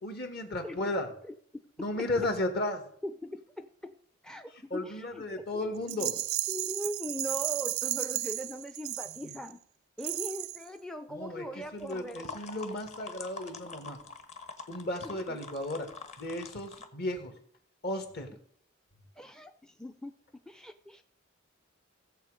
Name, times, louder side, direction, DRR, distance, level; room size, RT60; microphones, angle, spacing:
voice 1, 0.0-1.1 1.8-2.9 4.7-6.1 9.2-9.3 11.1-11.5 11.7-14.0 14.7-15.9 16.2-17.4 17.8-18.4, left 1 dB, 55° left, 5 dB, 2.0 m, -34 dB
voice 2, 1.2-2.1 3.0-3.9 4.2-6.1 6.5-9.6 10.0-12.4 15.1-15.4 19.2-20.1 20.5-21.0, equal, 5° left, 9 dB, 0.5 m, -40 dB
Rattle, 5.9-9.5 10.0-10.7, right 17 dB, 85° right, 0.4 m, -34 dB
sound 1, 11.8-16.9, left 4 dB, 35° left, 1.3 m, -45 dB
16.5 x 7.3 x 5.1 m, 0.64 s
head